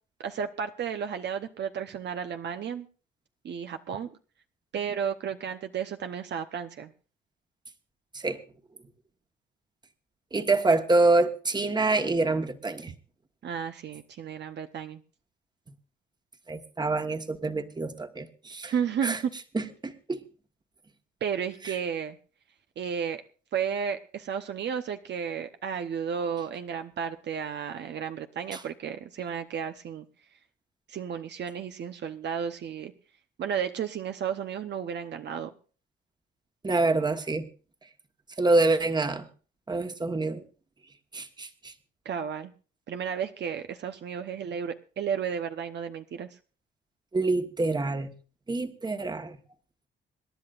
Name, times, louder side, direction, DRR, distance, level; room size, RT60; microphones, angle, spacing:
voice 1, 0.2-2.9 3.4-4.1 4.7-6.9 13.4-15.0 18.6-19.3 21.2-22.2 22.8-23.2 23.5-30.1 30.9-32.9 33.4-35.5 42.0-42.5 42.9-46.3, right 7 dB, 60° right, 7 dB, 0.9 m, -33 dB
voice 2, 10.3-12.9 16.5-18.7 19.0-19.2 19.5-20.2 21.7-21.8 28.5-28.6 36.6-37.4 38.4-39.3 39.7-40.4 41.1-41.7 47.1-48.1 48.5-49.4, right 2 dB, 20° right, 8 dB, 1.4 m, -26 dB
26.5 x 11.0 x 2.5 m, 0.36 s
cardioid pair, 90°, 20 cm